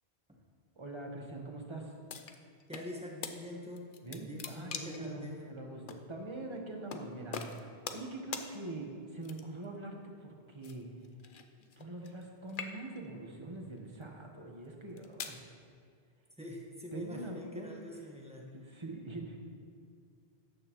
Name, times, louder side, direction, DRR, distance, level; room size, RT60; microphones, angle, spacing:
voice 1, 0.8-1.9 4.0-7.4 7.9-10.9 11.8-15.4 16.9-17.7 18.5-19.4, right 2 dB, 30° right, 1 dB, 1.2 m, -43 dB
sound 1, 2.1-2.9 3.2-3.4 3.8-5.1 5.9-6.0 6.9-7.0 7.3-8.1 8.3-8.5 9.2-9.7 10.6-12.2 12.5-13.1 13.8-14.0 14.7-15.4, left 6 dB, 60° left, 0.8 m, -42 dB
voice 2, 2.7-3.9 4.2-5.5 16.4-18.8, left 1 dB, 5° right, -2 dB, 1.4 m, -45 dB
13.5 x 9.2 x 3.1 m, 2.2 s
omnidirectional pair, 1.1 m